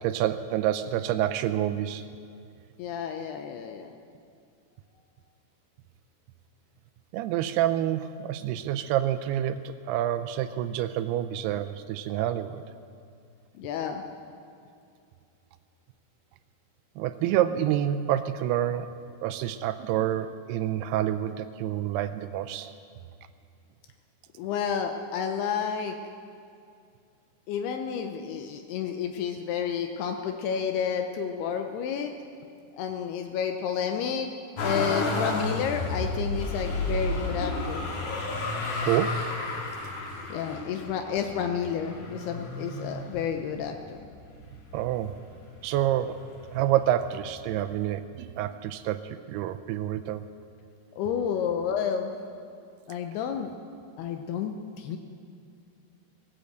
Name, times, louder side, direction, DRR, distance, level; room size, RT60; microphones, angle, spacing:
voice 1, 0.0-2.1 7.1-12.6 17.0-18.9 19.2-22.7 38.8-39.3 44.7-45.2 45.6-46.2 46.5-50.3, right 11 dB, 80° right, 10 dB, 2.5 m, -28 dB
voice 2, 2.8-3.9 13.6-14.0 24.4-25.9 27.5-32.1 32.8-34.3 34.6-37.9 40.3-44.1 51.0-52.1 52.9-53.5 54.0-55.0, left 7 dB, 80° left, 5 dB, 2.7 m, -30 dB
Motor vehicle (road), 34.6-43.7 44.3-45.1 45.4-46.5 47.5-47.6, left 2 dB, 50° left, 2.2 m, -32 dB
18.0 x 10.0 x 7.9 m, 2.4 s
omnidirectional pair, 4.8 m